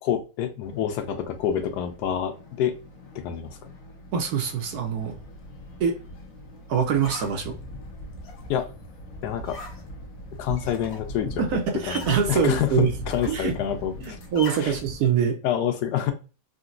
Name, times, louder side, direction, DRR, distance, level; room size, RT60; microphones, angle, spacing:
voice 1, 0.0-2.8 3.1-3.7 8.5-8.7 9.2-9.6 10.4-11.4 11.9-14.2 14.6-14.7 15.4-16.1, left 9 dB, 85° left, 1.2 m, -27 dB
sound 1, 0.6-14.4, left 1 dB, 35° left, 1.1 m, -48 dB
voice 2, 4.1-5.2 5.8-6.0 6.7-7.6 11.4-12.9 13.3-13.5 14.0-15.4, right 7 dB, 75° right, 1.1 m, -24 dB
sound 2, 5.0-15.0, left 1 dB, 65° left, 1.2 m, -39 dB
3.9 x 2.2 x 2.5 m
omnidirectional pair, 1.7 m